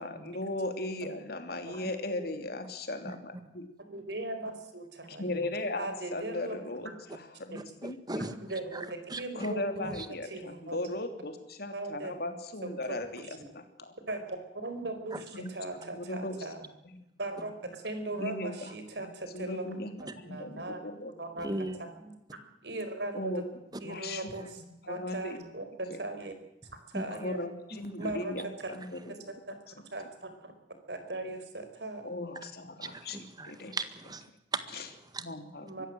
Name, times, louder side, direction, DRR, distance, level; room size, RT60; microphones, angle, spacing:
voice 1, 0.0-3.7 5.1-8.3 9.3-13.9 15.3-15.5 15.8-16.5 16.8-17.0 18.1-21.1 21.5-21.6 23.1-23.4 23.8-25.4 25.9-26.0 27.1-29.3 32.0-33.7 34.7-34.9 35.2-35.8, left 2 dB, 60° left, 7 dB, 3.1 m, -38 dB
voice 2, 3.8-5.4 5.8-6.6 8.5-9.9 10.2-10.8 11.7-12.1 12.9-13.3 14.1-16.6 17.2-19.9 20.2-20.8 21.2-21.5 22.0-22.1 22.6-23.4 23.8-24.6 24.9-26.3 26.7-27.4 28.0-28.3 29.5-30.5 30.9-32.1 35.6-35.9, right 2 dB, 75° right, 8 dB, 4.6 m, -39 dB
voice 3, 7.5-8.3 8.7-9.5 9.8-10.1 15.1-15.2 20.0-20.1 21.4-21.8 26.9-27.1 28.0-28.1 32.8-35.3, right 2 dB, 25° right, 11 dB, 1.7 m, -38 dB
23.5 x 15.5 x 7.8 m, 0.88 s
head